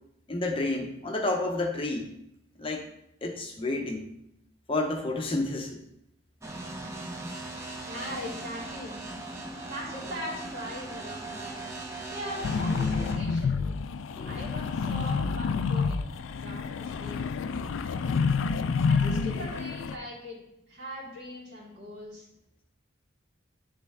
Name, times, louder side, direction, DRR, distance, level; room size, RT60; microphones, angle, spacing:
voice 1, 0.3-2.1 2.6-2.8 3.2-4.0 4.7-5.8 14.2-14.4, left 2 dB, 30° left, 2 dB, 0.6 m, -30 dB
sound 1, 6.4-13.1, right 2 dB, 15° right, 0.7 m, -39 dB
voice 2, 7.8-9.0 9.7-11.6 12.1-13.6 14.2-16.1 16.4-17.3 18.8-20.4 20.7-22.3, left 1 dB, 60° right, -5 dB, 2.6 m, -40 dB
sound 2, 12.4-20.0, left 5 dB, 80° left, 0.3 m, -28 dB
10.0 x 3.4 x 3.5 m, 0.82 s
head